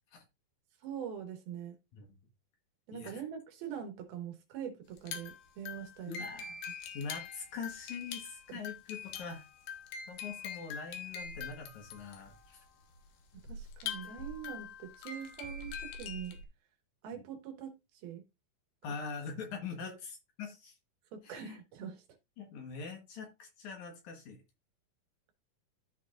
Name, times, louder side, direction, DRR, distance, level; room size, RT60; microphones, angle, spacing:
voice 1, 0.8-1.8 2.9-6.2 8.5-8.6 13.5-16.4 17.0-18.2 19.8-20.0 21.1-22.0, right 8 dB, 80° right, 3.3 m, -43 dB
voice 2, 2.9-3.2 6.1-6.6 6.9-9.4 10.1-12.6 17.1-17.3 18.8-20.8 21.2-21.6 22.4-24.4, left 5 dB, 60° left, 2.5 m, -43 dB
sound 1, 4.9-16.5, left 6 dB, 85° left, 3.1 m, -44 dB
14.0 x 4.7 x 2.5 m
omnidirectional pair, 4.3 m